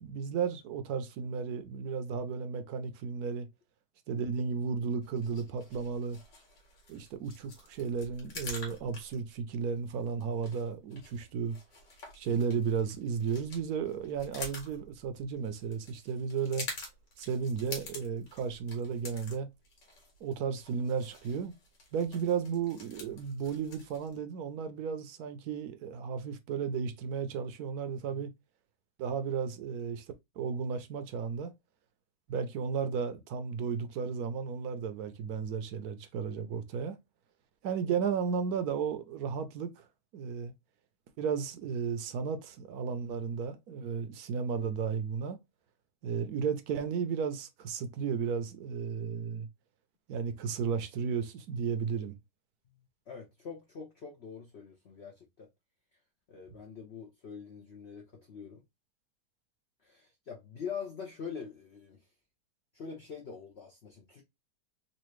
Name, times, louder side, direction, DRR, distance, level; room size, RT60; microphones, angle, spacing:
voice 1, 0.0-3.5 4.1-6.2 6.9-11.6 12.1-16.7 17.2-19.5 20.2-21.5 21.9-28.3 29.0-30.0 30.4-31.5 32.3-37.0 37.6-39.9 40.1-40.5 41.2-45.4 46.0-49.5 50.1-52.2, right 6 dB, 65° right, 1.1 m, -34 dB
sound 1, 5.0-24.2, left 2 dB, 85° left, 2.1 m, -48 dB
voice 2, 53.1-55.5 56.3-58.6 59.8-62.0 62.7-64.2, left 6 dB, 50° left, 0.9 m, -44 dB
4.1 x 2.5 x 3.0 m
omnidirectional pair, 1.9 m